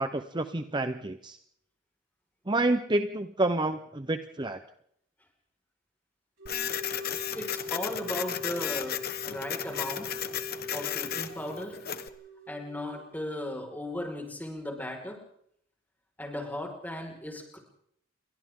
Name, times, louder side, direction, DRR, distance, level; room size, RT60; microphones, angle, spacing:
voice 1, 0.0-1.4 2.5-4.6 7.0-7.1, right 2 dB, 25° right, 9 dB, 0.8 m, -29 dB
sound 1, 6.4-13.1, left 1 dB, 65° right, 5.7 m, -42 dB
Printer, 6.5-12.1, left 9 dB, 50° left, 1.3 m, -34 dB
voice 2, 7.4-10.2 10.7-11.8 12.5-15.2 16.2-17.6, left 1 dB, 10° left, 1 dB, 5.2 m, -37 dB
29.5 x 23.5 x 3.8 m, 0.69 s
head